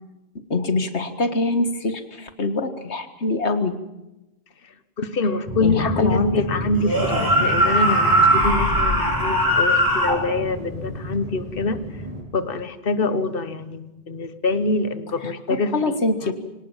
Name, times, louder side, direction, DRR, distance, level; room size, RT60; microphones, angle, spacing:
voice 1, 0.5-3.8 5.6-6.4 15.7-16.3, left 2 dB, 85° left, 9 dB, 2.1 m, -23 dB
voice 2, 4.6-11.8 12.3-16.0, left 3 dB, 55° left, 12 dB, 1.4 m, -25 dB
sound 1, 5.4-12.2, left 1 dB, 35° right, 5.6 m, -30 dB
sound 2, 6.8-10.2, right 1 dB, 20° right, 4.8 m, -19 dB
24.5 x 18.5 x 7.4 m, 0.96 s
omnidirectional pair, 1.1 m